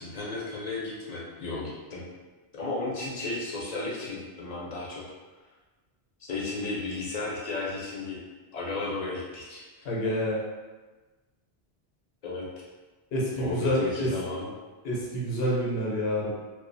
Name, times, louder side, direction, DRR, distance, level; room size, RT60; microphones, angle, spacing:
voice 1, 0.0-2.1 2.6-5.0 6.2-8.2 8.5-9.6 10.2-10.3 12.2-12.5 13.4-14.5, left 3 dB, 50° left, -4 dB, 0.6 m, -34 dB
voice 2, 9.8-10.4 13.1-14.1 14.8-16.3, equal, 70° left, -4 dB, 0.9 m, -28 dB
2.3 x 2.1 x 2.5 m, 1.3 s
omnidirectional pair, 1.1 m